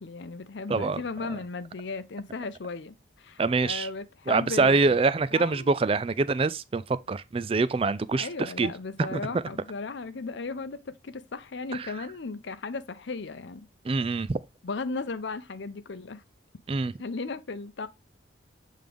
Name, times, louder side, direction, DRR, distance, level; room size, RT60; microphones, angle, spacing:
voice 1, 0.0-5.0 5.3-5.7 8.1-13.7 14.6-16.2 17.0-17.9, left 4 dB, 65° left, 0.6 m, -36 dB
voice 2, 0.7-1.0 3.4-3.9 4.3-8.7 9.1-9.2 13.8-14.4 16.7-16.9, right 3 dB, 30° right, 0.3 m, -25 dB
7.6 x 3.7 x 3.4 m
head